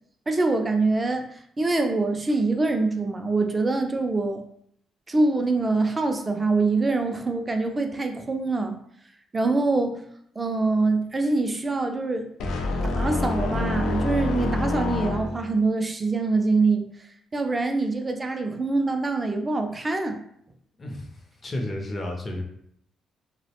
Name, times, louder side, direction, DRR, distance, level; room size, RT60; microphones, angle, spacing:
voice 1, 0.3-4.4 5.1-8.8 9.3-10.0 10.4-12.3 12.8-16.8 17.3-20.2, right 3 dB, 25° right, 6 dB, 0.4 m, -24 dB
sound 1, 12.4-15.6, left 2 dB, 85° left, 0.3 m, -27 dB
voice 2, 20.8-22.4, left 1 dB, 35° left, 2 dB, 0.5 m, -32 dB
2.4 x 2.0 x 2.8 m, 0.69 s
cardioid pair, 90°, 0 cm